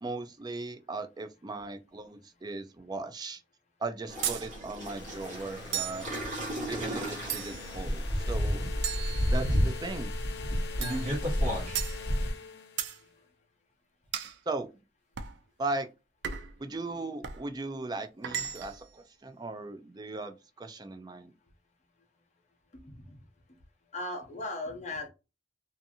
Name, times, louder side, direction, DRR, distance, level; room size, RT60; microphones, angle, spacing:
voice 1, 0.0-3.4 3.8-6.1 6.7-8.8 9.3-10.1 14.5-14.7 15.6-15.9 16.6-21.3, right 3 dB, 25° right, 0.4 m, -37 dB
sound 1, 4.1-12.3, equal, 45° right, 1.3 m, -31 dB
sound 2, 4.2-4.5 5.7-6.1 7.3-7.7 8.8-9.7 10.8-11.1 11.7-12.0 12.8-13.0 14.1-14.4 15.2-15.4 16.2-16.6 17.2-17.4 18.2-18.8, right 9 dB, 85° right, 0.4 m, -35 dB
sound 3, 4.8-13.1, left 6 dB, 70° left, 0.4 m, -44 dB
voice 2, 22.8-23.2 23.9-25.1, left 2 dB, 40° left, 0.8 m, -38 dB
2.7 x 2.5 x 2.5 m
head